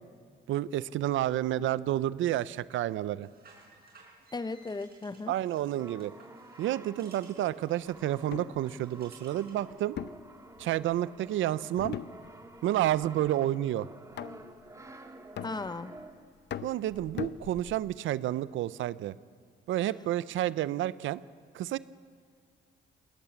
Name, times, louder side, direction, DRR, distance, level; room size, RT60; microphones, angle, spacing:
voice 1, 0.5-3.3 5.3-6.1 6.6-10.0 10.6-12.0 12.6-13.9 16.6-19.1 19.7-21.2 21.5-21.8, right 13 dB, 80° right, 17 dB, 0.6 m, -30 dB
sound 1, 3.2-9.6, right 3 dB, 50° right, 5.8 m, -59 dB
voice 2, 4.3-5.3 15.4-16.0, left 3 dB, 20° left, 14 dB, 0.8 m, -36 dB
Brass instrument, 5.6-16.4, right 2 dB, 15° right, 1.8 m, -50 dB
sound 2, 8.3-8.6 10.0-11.0 11.8-12.6 12.9-13.3 14.2-14.7 15.4-16.0 16.5-18.0, left 10 dB, 60° left, 0.7 m, -40 dB
20.5 x 19.0 x 7.2 m, 2.2 s
cardioid pair, 90°, 20 cm